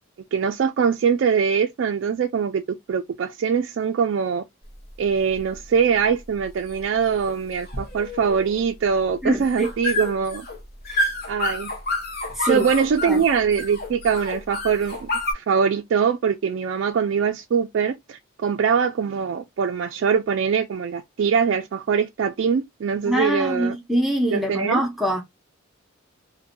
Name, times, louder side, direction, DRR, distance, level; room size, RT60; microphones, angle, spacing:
voice 1, 0.3-4.4 5.0-10.5 11.3-11.7 12.4-15.1 15.3-23.8 24.3-24.8, right 6 dB, 65° right, 0.3 m, -23 dB
sound 1, 4.6-15.3, left 2 dB, 50° left, 0.8 m, -30 dB
voice 2, 9.2-9.7 10.9-11.1 12.4-12.6 13.0-13.2 23.1-25.2, right 1 dB, ahead, 0.6 m, -24 dB
2.6 x 2.1 x 2.5 m
head